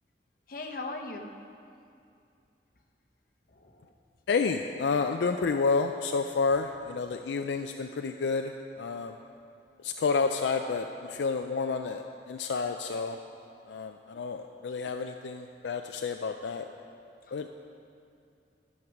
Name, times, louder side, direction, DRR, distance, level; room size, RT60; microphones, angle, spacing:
voice 1, 0.5-1.3 3.5-3.9 17.3-17.5, left 3 dB, 50° left, 3 dB, 0.9 m, -39 dB
voice 2, 4.3-9.2 9.8-13.2 13.7-16.7 17.3-17.5, left 4 dB, 75° left, 5 dB, 0.4 m, -30 dB
12.5 x 6.5 x 5.9 m, 2.5 s
head